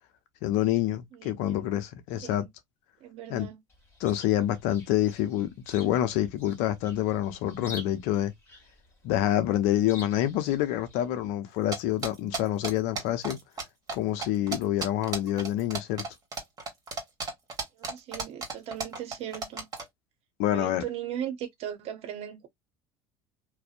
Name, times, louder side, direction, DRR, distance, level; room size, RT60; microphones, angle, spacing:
voice 1, 0.4-2.4 3.3-3.5 4.0-8.3 9.0-13.4 13.9-16.0 20.4-20.8, left 12 dB, 70° left, 0.6 m, -27 dB
voice 2, 1.1-1.7 2.2-2.5 3.0-3.6 17.7-19.7 20.5-22.5, right 10 dB, 60° right, 0.7 m, -38 dB
Chirp tweet, 3.7-11.3, left 3 dB, 20° left, 1.5 m, -49 dB
sound 1, 11.7-13.6 13.9-14.0 14.2-19.8, right 3 dB, 35° right, 1.3 m, -33 dB
2.5 x 2.0 x 2.4 m
supercardioid pair, 85°, 12 cm